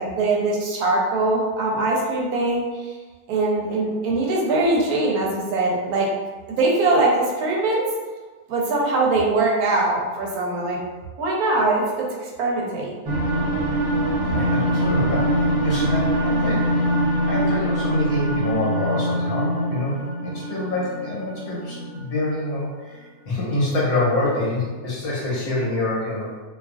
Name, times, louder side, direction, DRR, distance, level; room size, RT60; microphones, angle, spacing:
voice 1, 0.0-3.0 3.3-6.1 6.5-7.8 8.5-10.8 11.2-12.9, right 2 dB, 80° right, -3 dB, 1.1 m, -22 dB
sound 1, 13.0-22.4, equal, 55° right, 0.6 m, -23 dB
voice 2, 14.3-23.0 23.2-26.3, left 2 dB, 75° left, -6 dB, 1.3 m, -26 dB
2.6 x 2.4 x 2.4 m, 1.4 s
omnidirectional pair, 1.6 m